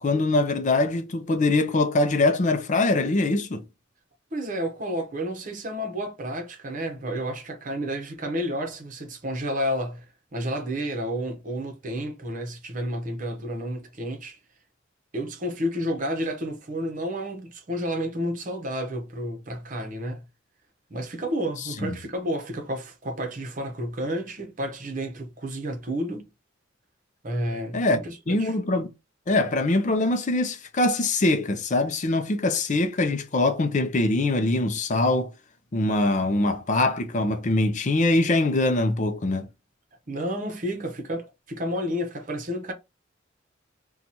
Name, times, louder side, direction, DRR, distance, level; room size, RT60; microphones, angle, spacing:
voice 1, 0.0-3.6 21.8-22.0 27.7-28.0 28.3-28.9 29.3-35.3 35.7-39.5, left 2 dB, 40° left, 0.5 m, -23 dB
voice 2, 4.3-10.1 10.3-14.4 15.1-20.2 20.9-26.3 27.2-28.5 40.1-42.7, equal, 45° right, 0.8 m, -31 dB
2.9 x 2.3 x 4.0 m
head